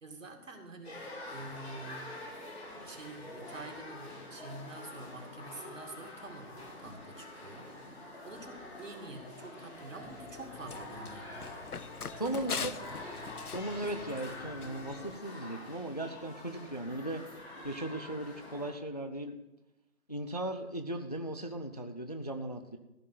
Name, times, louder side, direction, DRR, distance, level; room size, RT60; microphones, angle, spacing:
voice 1, 0.0-2.1 2.7-7.8 8.2-11.7 12.2-12.8, right 2 dB, 60° right, 3 dB, 2.4 m, -47 dB
sound 1, 0.8-18.7, left 1 dB, 45° left, 3.6 m, -46 dB
Run, 10.0-15.2, left 6 dB, 85° left, 0.7 m, -43 dB
voice 2, 12.2-12.7 13.5-17.2 17.6-19.4 20.1-22.8, right 1 dB, 30° left, 7 dB, 0.5 m, -37 dB
15.0 x 5.2 x 9.1 m, 0.95 s
figure-of-eight pair, 155°, 44 cm